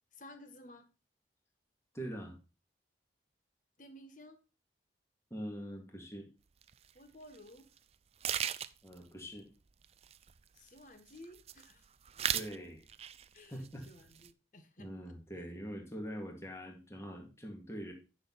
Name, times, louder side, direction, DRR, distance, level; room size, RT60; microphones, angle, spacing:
voice 1, 0.1-0.9 3.8-4.4 6.9-7.7 10.5-11.8 13.3-14.9, left 1 dB, 45° left, 8 dB, 1.6 m, -54 dB
voice 2, 1.9-2.4 5.3-6.3 8.8-9.5 12.3-12.9 13.5-13.9 14.8-17.9, equal, 15° left, 2 dB, 2.3 m, -43 dB
sound 1, 6.6-6.7 7.3-7.5 7.8-7.9 8.2-9.0 9.8-10.8 11.1-11.7 12.0-12.6 12.9-13.4 13.6-14.3, right 9 dB, 35° right, 0.4 m, -36 dB
10.0 x 6.3 x 4.0 m, 0.32 s
head